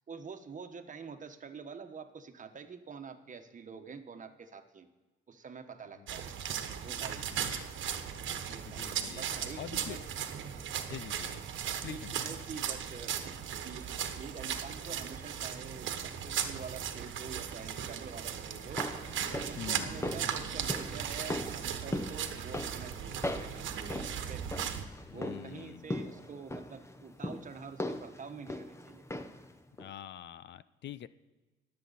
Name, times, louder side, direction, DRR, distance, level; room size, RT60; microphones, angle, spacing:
voice 1, 0.1-4.9 5.3-6.3 6.8-7.5 8.1-10.0 11.7-13.4 13.6-18.8 19.4-24.4 25.1-29.0, right 5 dB, 40° right, 7 dB, 1.2 m, -47 dB
sound 1, 6.1-24.8, right 8 dB, 75° right, 1.2 m, -37 dB
voice 2, 7.2-7.6 8.7-9.3 9.6-10.0 10.7-11.4 11.8-12.1 19.6-19.9 25.1-26.0 29.8-31.1, left 11 dB, 65° left, 16 dB, 0.5 m, -45 dB
sound 2, 18.5-29.5 29.8-29.9, left 1 dB, 15° left, 0.9 m, -40 dB
22.0 x 7.7 x 4.1 m, 1.2 s
cardioid pair, 90°, 20 cm